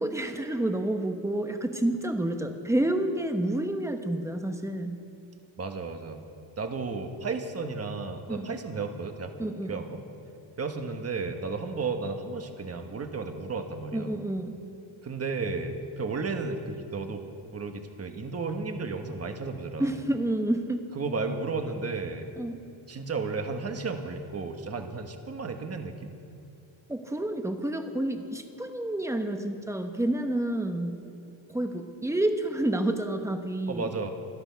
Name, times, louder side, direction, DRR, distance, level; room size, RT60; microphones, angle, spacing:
voice 1, 0.0-5.0 8.3-8.5 9.4-9.8 13.9-14.6 19.8-20.8 22.4-22.6 26.9-31.0 31.5-33.9, right 1 dB, 5° right, 6 dB, 0.9 m, -29 dB
voice 2, 5.6-6.2 6.6-10.0 10.6-14.1 15.0-17.2 17.5-20.0 20.9-22.3 22.9-26.1 33.7-34.1, right 4 dB, 30° right, 6 dB, 1.2 m, -33 dB
25.5 x 8.8 x 5.7 m, 2.7 s
wide cardioid pair, 150°, 48 cm